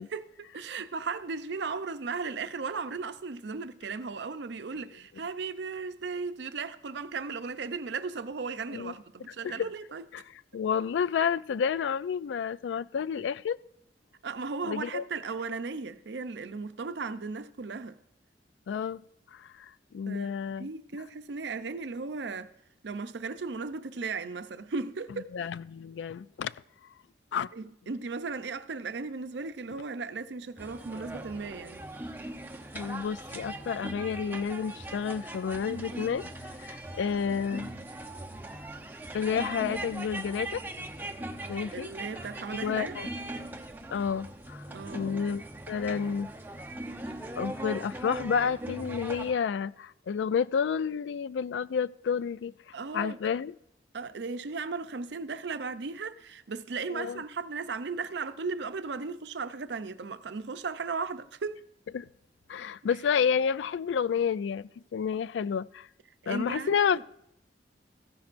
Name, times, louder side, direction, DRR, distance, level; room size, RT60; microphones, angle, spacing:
voice 1, 0.1-10.0 14.2-18.0 20.1-22.5 22.8-25.3 27.5-31.8 41.7-43.0 44.7-45.1 52.7-53.3 53.9-61.6 66.2-67.0, right 4 dB, 75° right, 0.6 m, -36 dB
voice 2, 10.5-13.6 14.6-15.0 18.7-19.0 19.3-20.7 25.3-26.5 27.3-27.5 32.7-36.3 36.6-37.7 39.1-40.6 41.5-41.9 42.5-43.1 43.9-44.6 44.9-46.3 47.4-52.5 52.9-53.5 56.9-57.2 61.9-62.1 62.5-65.9 66.3-67.0, left 7 dB, 85° left, 0.3 m, -30 dB
sound 1, 30.6-49.3, right 1 dB, 10° right, 0.6 m, -40 dB
15.0 x 10.5 x 2.5 m
head